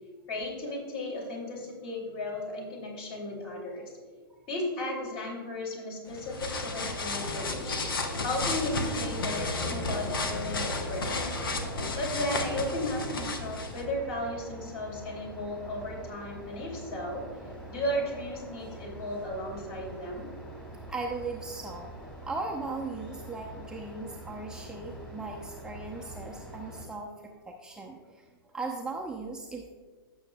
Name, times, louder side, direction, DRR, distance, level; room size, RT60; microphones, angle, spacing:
voice 1, 0.3-3.9 4.5-7.8 8.2-11.3 11.9-17.3 17.7-20.3, left 1 dB, 35° left, 0 dB, 2.8 m, -35 dB
sound 1, 6.1-13.8, left 2 dB, 65° left, 1.1 m, -32 dB
sound 2, 9.5-26.9, right 1 dB, 10° left, 2.0 m, -45 dB
voice 2, 20.9-21.9 22.2-29.7, right 3 dB, 5° right, -1 dB, 0.6 m, -38 dB
15.5 x 7.1 x 2.3 m, 1.5 s
figure-of-eight pair, 110°, 12 cm